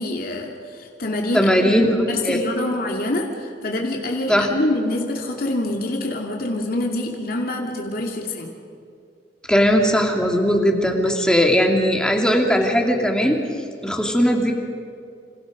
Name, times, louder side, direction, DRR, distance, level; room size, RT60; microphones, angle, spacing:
voice 1, 0.0-1.7 2.1-8.5, left 1 dB, 55° left, 0 dB, 2.6 m, -26 dB
voice 2, 1.3-2.4 4.3-4.5 9.5-13.4 13.8-14.5, equal, 5° left, 1 dB, 2.9 m, -18 dB
28.5 x 27.5 x 5.2 m, 2.4 s
head